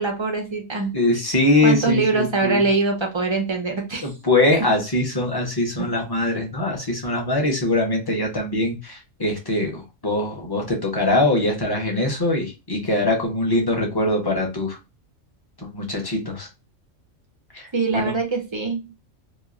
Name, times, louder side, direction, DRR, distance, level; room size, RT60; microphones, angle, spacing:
voice 1, 0.0-0.9 1.6-4.1 5.8-5.9 17.7-18.9, right 3 dB, 35° right, 2 dB, 0.4 m, -23 dB
voice 2, 0.9-2.6 4.0-14.8 15.6-16.5 17.5-17.6 17.9-18.2, left 2 dB, 20° left, 0 dB, 0.7 m, -22 dB
3.0 x 2.3 x 2.4 m, 0.26 s
omnidirectional pair, 1.3 m